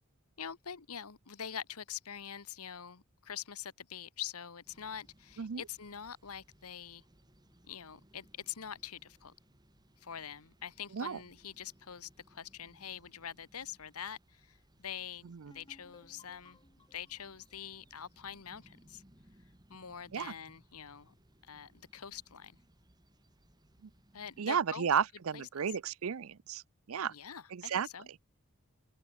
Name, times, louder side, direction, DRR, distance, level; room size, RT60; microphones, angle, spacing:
voice 1, 0.4-7.0 7.7-9.3 10.0-16.6 16.9-19.0 19.7-21.1 21.4-22.6 24.1-24.9 25.3-25.4 27.1-28.1, left 8 dB, 90° left, 1.3 m, -45 dB
sound 1, 4.6-24.4, right 1 dB, 20° right, 2.1 m, -65 dB
sound 2, 15.5-19.1, left 2 dB, 20° left, 2.8 m, -63 dB
voice 2, 24.4-26.6 26.9-27.1 27.5-27.9, right 7 dB, 75° right, 0.5 m, -33 dB
open air
head